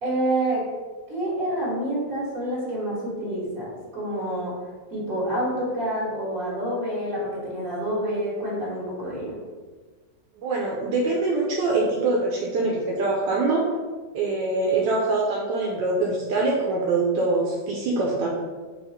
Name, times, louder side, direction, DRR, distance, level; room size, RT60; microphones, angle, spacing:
voice 1, 0.0-0.6 1.1-4.5 4.9-9.3, right 1 dB, 50° right, -7 dB, 2.0 m, -28 dB
voice 2, 10.4-13.6 14.1-18.3, right 3 dB, 80° right, -3 dB, 1.3 m, -24 dB
4.9 x 2.4 x 4.2 m, 1.4 s
omnidirectional pair, 2.0 m